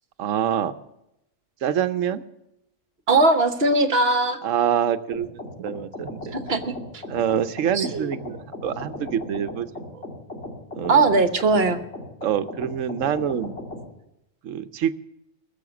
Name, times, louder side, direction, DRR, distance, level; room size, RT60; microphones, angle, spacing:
voice 1, 0.2-0.7 1.6-2.2 4.4-5.3 5.6-6.3 7.1-10.0 10.7-11.1 12.2-13.5 14.4-14.9, right 9 dB, 90° right, 12 dB, 1.1 m, -26 dB
voice 2, 3.1-4.4 6.3-7.0 7.7-8.1 10.9-11.8, right 3 dB, 55° right, 8 dB, 1.3 m, -20 dB
sound 1, 5.1-13.8, left 1 dB, 60° left, 3.5 m, -37 dB
20.5 x 7.2 x 7.0 m, 0.84 s
omnidirectional pair, 1.3 m